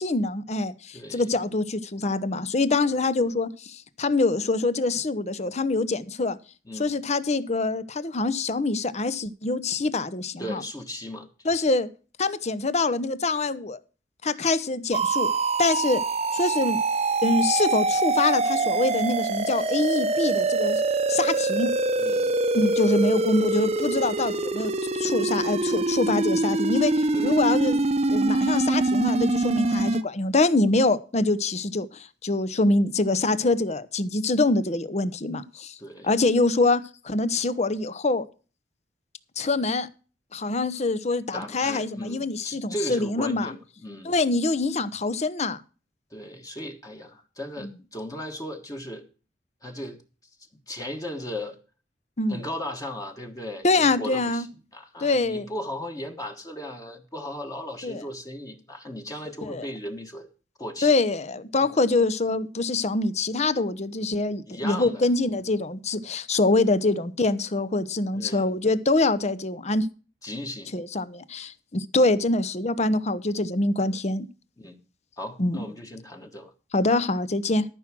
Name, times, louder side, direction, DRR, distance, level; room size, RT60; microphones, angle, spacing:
voice 1, 0.0-6.4 6.8-10.6 11.4-11.9 12.2-13.8 14.2-15.3 15.6-16.0 16.3-16.8 17.2-20.8 21.1-21.7 22.5-24.7 25.0-27.8 28.1-35.8 36.0-38.3 39.4-39.9 40.3-43.5 44.0-45.6 47.6-47.7 52.2-52.4 53.6-54.4 55.0-55.5 57.8-58.0 59.4-59.7 60.8-69.9 70.7-74.3 75.4-75.6 76.7-77.7, left 2 dB, 40° left, 0.8 m, -25 dB
voice 2, 0.9-1.3 6.6-7.0 10.4-11.7 22.0-22.3 27.1-27.4 35.8-36.1 41.3-44.1 46.1-49.0 49.6-50.0 50.7-51.6 52.3-60.3 60.6-60.9 61.6-61.8 64.5-65.0 68.1-68.5 70.2-70.7 74.6-74.8 75.2-76.5, left 1 dB, 20° left, 1.5 m, -37 dB
sound 1, 14.9-30.0, right 2 dB, 35° right, 0.8 m, -24 dB
13.5 x 6.1 x 6.0 m
head